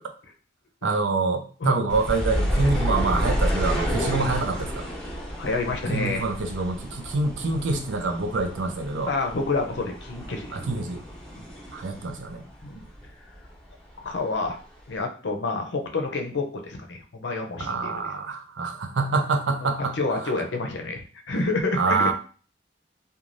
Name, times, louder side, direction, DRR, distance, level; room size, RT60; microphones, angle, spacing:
voice 1, 0.8-4.9 5.9-9.1 10.5-11.0 11.7-12.4 17.6-19.9 20.2-20.3 21.7-22.1, right 3 dB, 80° right, 6 dB, 0.5 m, -26 dB
sound 1, 1.9-13.1 13.3-14.4 14.9-15.0, equal, 5° left, 1.0 m, -30 dB
voice 2, 5.4-6.3 9.1-10.6 12.6-12.9 14.0-14.6 14.9-17.9 19.6-22.1, left 3 dB, 65° left, 3 dB, 0.6 m, -28 dB
3.1 x 2.3 x 2.5 m, 0.40 s
head